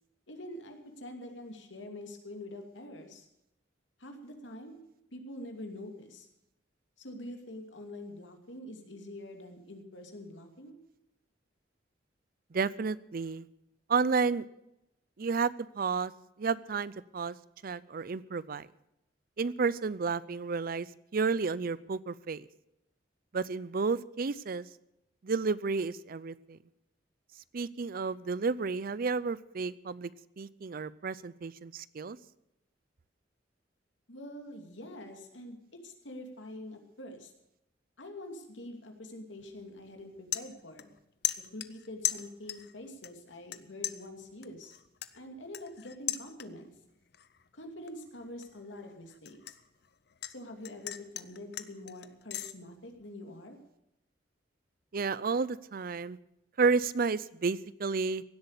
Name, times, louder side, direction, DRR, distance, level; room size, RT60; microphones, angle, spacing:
voice 1, 0.3-3.2 4.0-4.8 5.1-6.3 7.0-10.8 34.1-35.6 35.8-37.3 38.0-40.9 41.5-44.7 45.1-46.7 47.5-49.5 50.3-53.6, left 1 dB, 85° left, 4 dB, 2.6 m, -45 dB
voice 2, 12.5-13.5 13.9-14.5 15.2-16.1 16.4-17.4 17.6-18.7 19.4-20.9 21.1-22.5 23.3-24.7 25.2-26.6 27.5-30.1 30.4-32.2 54.9-56.2 56.6-58.2, right 4 dB, 50° right, 19 dB, 0.5 m, -31 dB
sound 1, 39.4-39.6 40.0-41.0 41.2-42.7 43.0-43.6 43.8-46.8 47.1-47.5 47.9-50.3 50.6-52.5, left 13 dB, 60° left, 0.7 m, -37 dB
16.5 x 8.1 x 8.1 m, 0.85 s
head